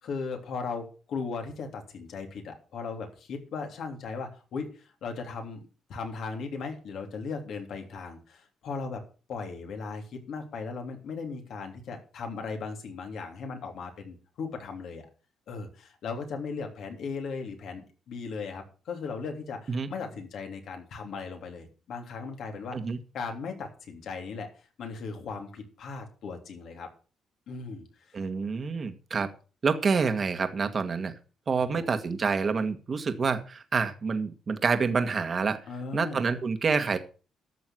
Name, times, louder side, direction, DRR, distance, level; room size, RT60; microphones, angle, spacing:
voice 1, 0.0-9.0 9.3-15.0 15.5-22.8 23.1-24.5 24.8-26.9 27.5-28.2 31.7-31.8 35.7-36.2, left 4 dB, 70° left, 4 dB, 3.1 m, -37 dB
voice 2, 28.1-29.3 29.6-31.1 31.5-35.6 35.9-37.0, right 5 dB, 40° right, 9 dB, 1.6 m, -27 dB
12.5 x 6.9 x 6.3 m, 0.37 s
cardioid pair, 90°, 0 cm